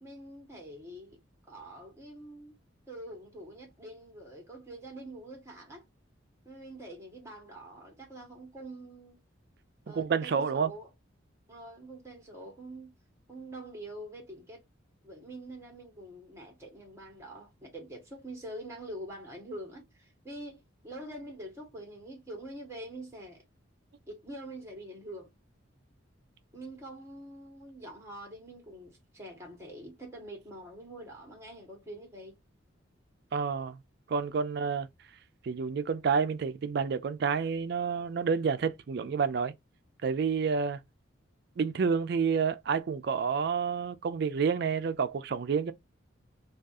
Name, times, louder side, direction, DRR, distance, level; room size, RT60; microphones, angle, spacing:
voice 1, 0.0-1.2 1.5-2.5 2.9-5.9 6.4-9.2 9.9-10.9 11.5-12.9 13.3-14.6 15.0-23.4 24.1-25.3 26.5-32.4 33.5-33.7, right 1 dB, 15° right, 1.2 m, -45 dB
voice 2, 9.9-10.7 33.3-33.8 34.1-34.9 35.4-39.5 40.0-40.8 41.6-45.7, right 6 dB, 55° right, 0.3 m, -29 dB
3.5 x 2.4 x 2.5 m
head